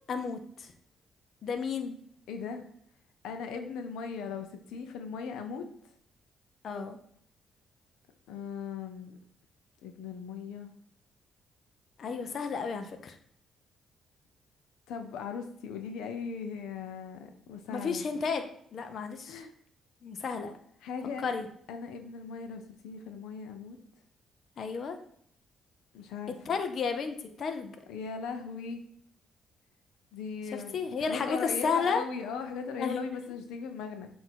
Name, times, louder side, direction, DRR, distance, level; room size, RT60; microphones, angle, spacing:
voice 1, 0.1-0.7 1.4-2.0 6.6-7.0 12.0-13.2 17.7-18.4 18.7-19.4 20.0-20.5 21.2-21.4 24.6-25.0 26.5-27.7 30.5-32.0 32.8-33.0, left 5 dB, 55° left, 6 dB, 0.7 m, -32 dB
voice 2, 2.3-2.7 3.2-5.7 8.3-9.2 9.8-10.7 14.9-18.1 19.3-19.5 20.8-21.3 21.7-23.8 25.9-26.4 27.9-28.8 30.1-30.8 31.1-34.1, left 6 dB, 90° left, 6 dB, 0.7 m, -38 dB
7.6 x 2.8 x 4.6 m, 0.66 s
cardioid pair, 90°, 0 cm